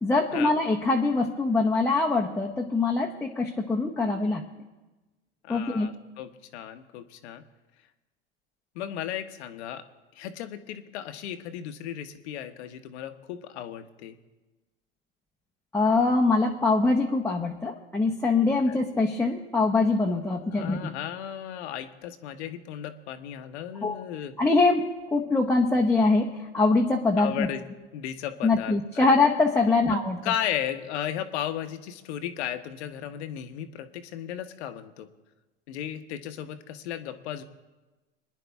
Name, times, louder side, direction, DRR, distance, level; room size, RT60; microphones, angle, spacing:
voice 1, 0.0-4.4 5.5-5.9 15.7-20.8 23.8-24.0 24.4-27.5 28.4-30.2, left 3 dB, 5° left, -2 dB, 0.9 m, -23 dB
voice 2, 5.4-7.4 8.7-9.8 10.1-14.2 18.7-18.8 20.5-24.3 27.2-27.6 27.9-29.1 29.8-30.0 30.2-35.1 35.7-37.4, left 10 dB, 70° left, 8 dB, 1.2 m, -35 dB
23.0 x 10.0 x 3.5 m, 1.1 s
hypercardioid pair, 100°, 35 cm